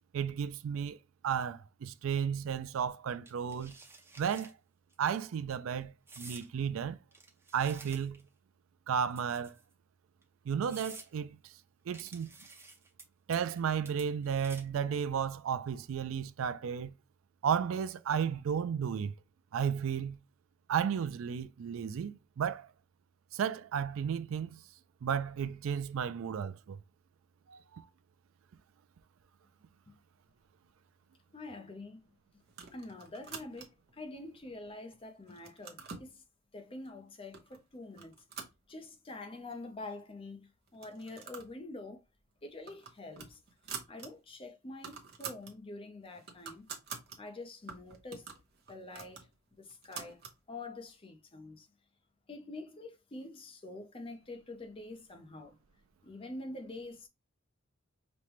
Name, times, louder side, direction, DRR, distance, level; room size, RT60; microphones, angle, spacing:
voice 1, 0.1-1.0 1.2-3.7 4.2-4.5 5.0-7.0 7.5-8.2 8.9-9.5 10.5-11.4 11.9-12.3 13.3-16.9 17.4-19.1 19.5-20.2 20.7-22.7 23.3-24.6 25.0-26.8 27.5-27.9, right 7 dB, 85° right, 0.4 m, -33 dB
sound 1, 3.3-4.5 4.9-5.2 6.1-6.5 7.1-8.3 9.1-9.7 10.2-10.3 10.7-11.1 11.9-13.0 13.3-13.6 13.9-14.8, right 3 dB, 10° right, 0.7 m, -51 dB
voice 2, 31.3-32.0 32.7-36.2 36.5-38.2 38.7-42.0 42.4-43.4 43.9-46.7 47.2-48.3 48.7-49.3 49.6-50.2 50.5-51.7 52.3-55.6 56.0-57.1, left 2 dB, 25° left, 0.6 m, -46 dB
sound 2, 32.5-33.9 34.5-35.0 35.3-36.1 36.9-37.0 37.3-37.6 37.9-39.2 39.5-39.6 39.8-39.9 40.7-41.6 41.9-42.1 42.4-44.1 44.4-44.5 44.7-45.5 46.0-47.2 47.7-50.4, right 6 dB, 50° right, 0.8 m, -47 dB
5.1 x 2.2 x 3.0 m
head